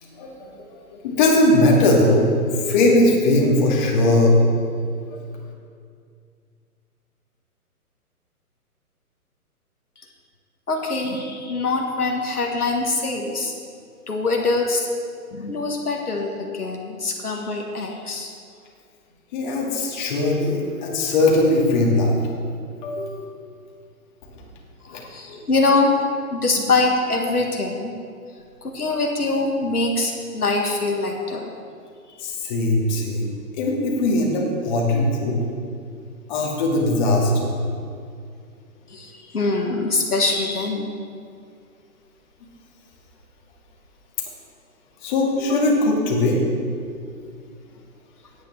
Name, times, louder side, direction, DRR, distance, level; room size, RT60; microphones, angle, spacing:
voice 1, 0.7-2.3 2.6-4.4 5.1-5.2 19.3-22.3 22.8-23.3 24.9-25.0 25.3-25.4 32.2-35.4 36.3-37.6 45.0-46.4, left 2 dB, 30° left, -2 dB, 2.1 m, -20 dB
voice 2, 10.7-13.5 14.1-14.9 15.3-18.3 24.9-26.0 26.3-27.9 28.6-31.5 32.1-32.2 38.9-40.9, left 3 dB, 75° left, 1 dB, 1.6 m, -23 dB
17.0 x 9.1 x 3.4 m, 2.3 s
figure-of-eight pair, 135°, 45 cm